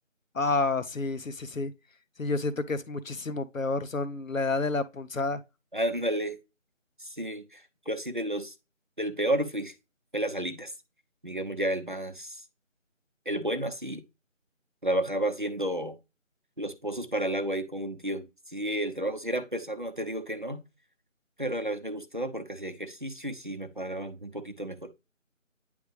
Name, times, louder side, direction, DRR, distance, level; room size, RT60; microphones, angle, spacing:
voice 1, 0.3-1.7 2.2-5.4, left 3 dB, 85° left, 0.8 m, -29 dB
voice 2, 5.7-6.4 7.0-8.5 9.0-9.7 10.1-10.7 11.2-12.4 13.3-14.0 14.8-16.0 16.6-20.6 21.4-24.9, right 1 dB, 40° right, 0.7 m, -31 dB
9.4 x 3.4 x 3.2 m
figure-of-eight pair, 170°, 39 cm